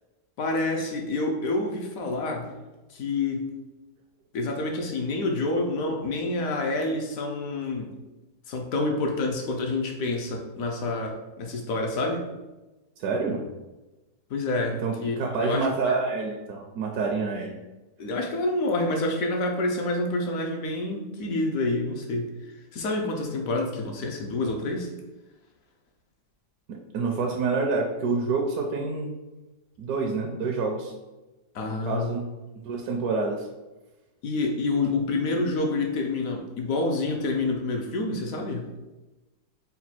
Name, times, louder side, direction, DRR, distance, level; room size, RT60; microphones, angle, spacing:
voice 1, 0.4-2.5 2.9-3.5 4.3-7.9 8.5-12.3 14.3-15.2 15.4-15.9 18.0-22.3 22.7-24.9 31.5-32.1 34.2-38.7, left 2 dB, 70° left, 2 dB, 0.9 m, -28 dB
voice 2, 13.0-13.4 14.8-17.6 26.7-29.1 29.8-30.9 31.7-32.3 32.6-33.5, right 4 dB, 70° right, 0 dB, 1.0 m, -27 dB
4.1 x 2.3 x 4.2 m, 1.1 s
omnidirectional pair, 1.7 m